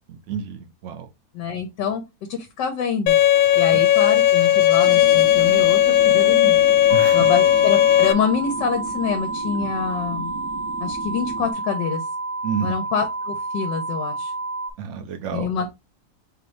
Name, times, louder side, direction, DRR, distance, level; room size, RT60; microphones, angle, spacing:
voice 1, 0.1-1.1 6.9-7.3 9.6-9.7 12.4-12.7 14.8-15.5, right 7 dB, 85° right, 0.6 m, -29 dB
voice 2, 1.3-2.0 2.3-3.2 3.5-6.6 7.1-10.3 10.8-12.0 12.6-14.3 15.3-15.7, left 6 dB, 75° left, 1.4 m, -26 dB
Bowed string instrument, 3.1-8.1, left 12 dB, 90° left, 1.3 m, -16 dB
sound 1, 4.8-11.5, right 4 dB, 70° right, 1.5 m, -36 dB
sound 2, 6.9-14.7, right 2 dB, 25° left, 0.7 m, -30 dB
4.5 x 2.6 x 3.2 m
omnidirectional pair, 2.0 m